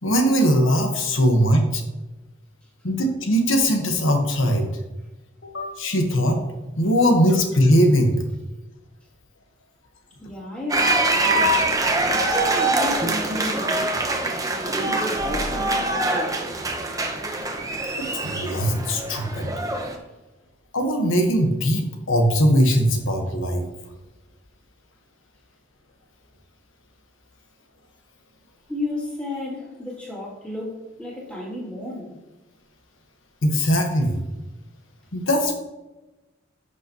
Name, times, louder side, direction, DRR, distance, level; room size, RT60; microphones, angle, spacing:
voice 1, 0.0-1.8 2.8-4.7 5.4-6.4 6.8-8.2 18.2-19.5 20.7-23.6 33.4-34.2 35.1-35.6, equal, 70° left, 3 dB, 1.4 m, -20 dB
voice 2, 10.2-11.6 12.0-13.9 14.6-16.4 17.6-17.7 28.7-32.1, left 1 dB, 5° left, -7 dB, 2.8 m, -32 dB
sound 1, 10.7-20.0, right 2 dB, 15° right, 0.9 m, -24 dB
11.0 x 6.6 x 3.0 m, 1.1 s
head